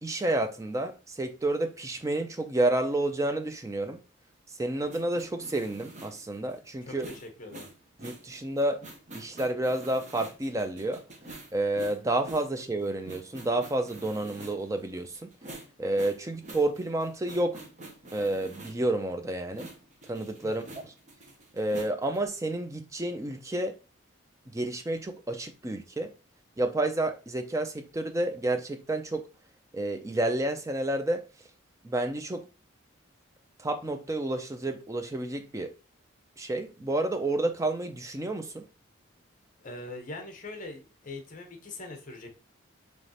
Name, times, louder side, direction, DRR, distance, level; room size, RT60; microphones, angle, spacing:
voice 1, 0.0-4.0 4.6-7.1 8.0-8.8 9.1-11.0 11.5-15.3 15.8-17.6 18.1-19.7 20.1-20.9 21.5-23.8 24.5-26.1 26.6-29.2 29.7-31.3 31.8-32.4 33.6-35.7 36.4-38.6, right 2 dB, 15° right, 0.4 m, -30 dB
sound 1, 4.9-18.9 19.5-22.3, right 2 dB, 35° right, 0.9 m, -47 dB
voice 2, 6.8-7.7 20.4-20.7 39.6-42.3, left 2 dB, 40° left, 0.9 m, -42 dB
5.0 x 3.1 x 2.8 m
head